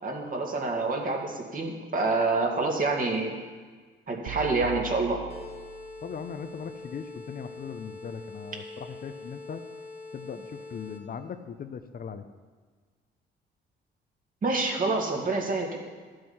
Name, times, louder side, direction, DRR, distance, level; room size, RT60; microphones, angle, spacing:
voice 1, 0.0-3.3 4.1-5.2 14.4-15.8, right 3 dB, 45° right, 0 dB, 2.1 m, -27 dB
sound 1, 4.3-6.5, right 15 dB, 85° right, 0.6 m, -42 dB
sound 2, 5.3-11.2, left 3 dB, 30° left, 1.7 m, -44 dB
voice 2, 6.0-9.6 10.1-12.3, left 6 dB, 45° left, 9 dB, 0.7 m, -39 dB
12.0 x 7.8 x 5.7 m, 1.5 s
cardioid pair, 90°, 20 cm